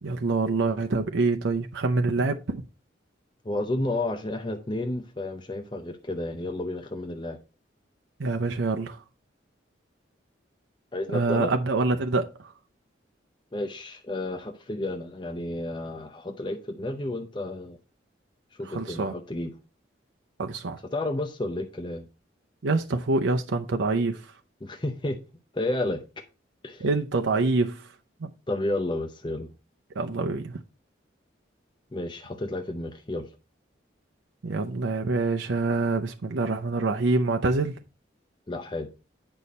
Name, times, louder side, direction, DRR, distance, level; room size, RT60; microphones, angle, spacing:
voice 1, 0.0-2.6 8.2-9.0 11.1-12.5 18.6-19.1 20.4-20.8 22.6-24.3 26.8-27.9 28.2-28.3 30.0-30.6 34.4-37.7, right 3 dB, 85° right, 0.6 m, -26 dB
voice 2, 3.4-7.4 10.9-11.5 13.5-17.8 18.6-19.5 20.9-22.0 24.6-25.2 25.5-26.0 26.6-26.8 28.5-29.5 31.9-33.3 38.5-38.9, left 2 dB, 25° left, 0.7 m, -31 dB
8.3 x 5.5 x 4.1 m
head